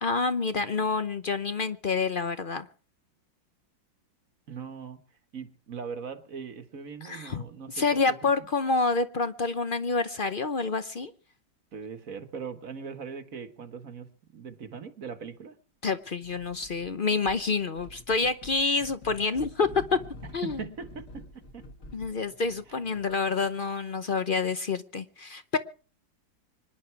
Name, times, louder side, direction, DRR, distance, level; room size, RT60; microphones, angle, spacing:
voice 1, 0.0-2.7 7.0-7.4 7.7-11.1 15.8-20.0 20.3-20.6 21.9-25.6, left 4 dB, 60° left, 12 dB, 0.5 m, -28 dB
voice 2, 4.5-5.0 5.3-8.3 11.7-15.6 20.4-21.2 21.5-21.6 22.7-22.8, right 6 dB, 45° right, 9 dB, 1.6 m, -40 dB
sound 1, 16.2-16.9 17.2-23.3, left 1 dB, 40° left, 2.4 m, -48 dB
25.5 x 11.0 x 4.7 m, 0.38 s
omnidirectional pair, 2.1 m